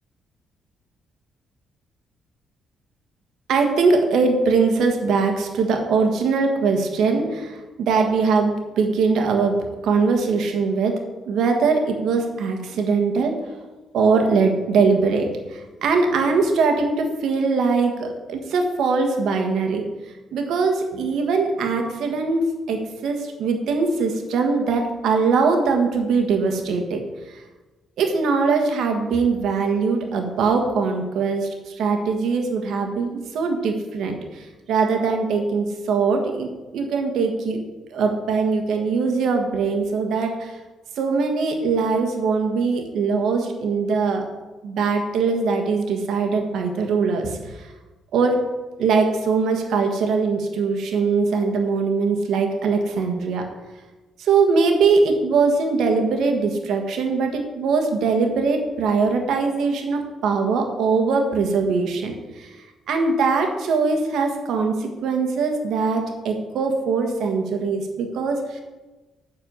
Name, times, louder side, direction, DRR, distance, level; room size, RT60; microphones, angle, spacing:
voice 1, 3.5-13.4 13.9-19.8 20.3-27.0 28.0-37.6 37.9-40.6 41.0-44.3 44.6-47.7 48.1-48.4 48.8-53.5 54.2-62.5 62.9-68.6, right 4 dB, 75° right, 4 dB, 1.5 m, -21 dB
9.8 x 4.8 x 7.1 m, 1.2 s
cardioid pair, 90°, 0 cm